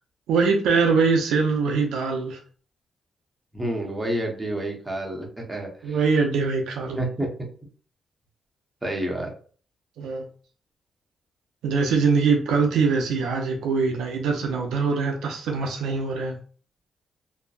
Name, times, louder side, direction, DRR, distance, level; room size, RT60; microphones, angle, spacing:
voice 1, 0.3-2.4 5.8-7.0 10.0-10.2 11.6-16.4, right 4 dB, 90° right, 0.5 m, -23 dB
voice 2, 3.5-6.0 7.0-7.3 8.8-9.3, right 1 dB, 15° right, 0.8 m, -29 dB
2.6 x 2.1 x 2.3 m
cardioid pair, 65°, 0 cm